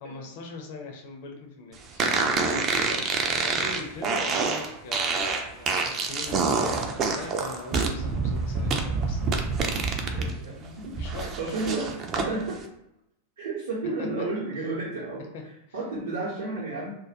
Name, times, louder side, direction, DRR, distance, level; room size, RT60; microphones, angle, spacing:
voice 1, 0.0-2.4 2.8-9.5 9.8-10.2 11.0-11.7 14.0-14.1 15.3-15.4 15.7-15.8, left 3 dB, 50° left, 2 dB, 0.4 m, -41 dB
sound 1, 2.0-10.3 10.6-12.3, right 4 dB, 30° right, 0.3 m, -27 dB
voice 2, 2.4-3.0 8.0-8.2 9.7-12.6 13.4-15.3 15.7-16.9, right 3 dB, 65° right, -7 dB, 0.6 m, -33 dB
2.2 x 2.1 x 2.7 m, 0.81 s
figure-of-eight pair, 90°, 0 cm